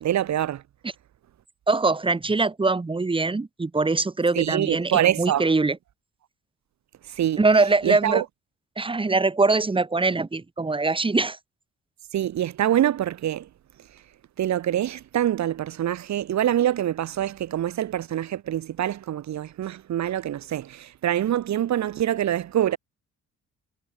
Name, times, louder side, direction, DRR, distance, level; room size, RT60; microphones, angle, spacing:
voice 1, 0.0-0.6 4.3-5.5 7.1-7.4 7.8-8.2 12.1-13.5 14.4-22.8, right 11 dB, 65° right, 1.6 m, -25 dB
voice 2, 1.7-5.8 7.4-8.2 8.8-11.4, right 3 dB, 15° right, 1.4 m, -22 dB
cardioid pair, 90°, 30 cm